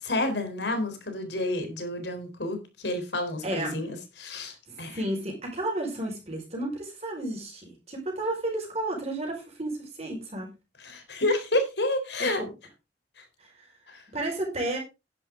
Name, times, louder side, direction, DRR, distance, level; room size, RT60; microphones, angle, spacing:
voice 1, 0.0-5.0 10.8-12.4 13.2-13.3 13.9-14.0, left 1 dB, 70° left, 8 dB, 3.9 m, -30 dB
voice 2, 3.4-3.8 4.4-10.5 12.2-12.5 13.4-13.7 14.1-14.8, right 1 dB, 35° right, -1 dB, 4.9 m, -32 dB
11.5 x 10.5 x 3.7 m, 0.28 s
head